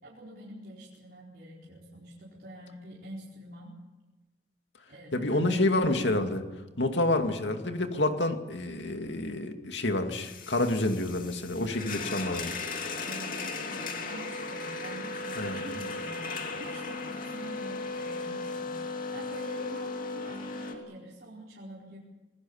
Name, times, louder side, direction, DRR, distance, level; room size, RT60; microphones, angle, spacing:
voice 1, 0.0-3.7 4.9-6.2 11.7-12.1 13.0-22.0, equal, 60° right, -5 dB, 4.7 m, -45 dB
voice 2, 5.1-6.4 6.8-12.6 15.4-15.6, left 2 dB, 80° left, 5 dB, 2.4 m, -28 dB
sound 1, 10.1-20.7, left 3 dB, 50° left, 2.7 m, -36 dB
27.0 x 19.5 x 7.3 m, 1.1 s
head